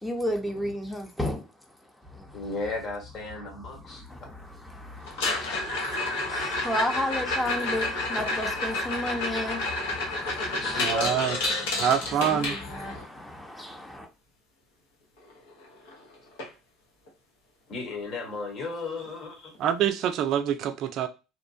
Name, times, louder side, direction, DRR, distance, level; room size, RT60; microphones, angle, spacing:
voice 1, 0.0-1.5 2.0-2.4 3.7-11.1 11.6-14.1, left 1 dB, 5° left, 0.8 m, -33 dB
voice 2, 2.3-4.0 10.5-11.7 17.7-19.5, left 3 dB, 50° left, 1.1 m, -35 dB
sound 1, 5.1-13.0 15.3-15.4 15.6-16.0 16.4-16.5 17.1-17.2 19.1-19.2, left 2 dB, 85° left, 0.9 m, -30 dB
voice 3, 10.8-11.4 11.8-12.6 19.6-21.1, right 9 dB, 60° right, 0.4 m, -25 dB
2.8 x 2.2 x 2.6 m
supercardioid pair, 85°, 0 cm